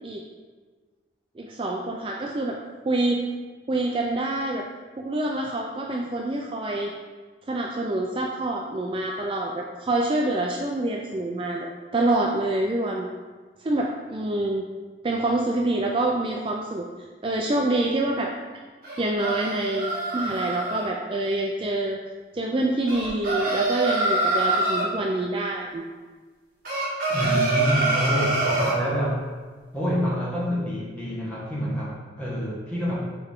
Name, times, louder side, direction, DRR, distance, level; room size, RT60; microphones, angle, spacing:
voice 1, 1.4-2.6 2.9-3.3 3.7-4.7 5.0-6.9 7.5-11.7 11.9-13.1 13.6-14.7 15.0-16.9 17.2-18.3 19.0-22.0 22.3-25.8 27.2-27.4, right 2 dB, 30° right, 0 dB, 0.4 m, -26 dB
sound 1, 18.8-20.8 22.9-24.9 26.6-28.8, right 2 dB, 50° right, 1.8 m, -25 dB
voice 2, 27.1-29.2 29.7-32.9, equal, 5° left, -8 dB, 1.6 m, -27 dB
6.7 x 4.4 x 3.6 m, 1.4 s
head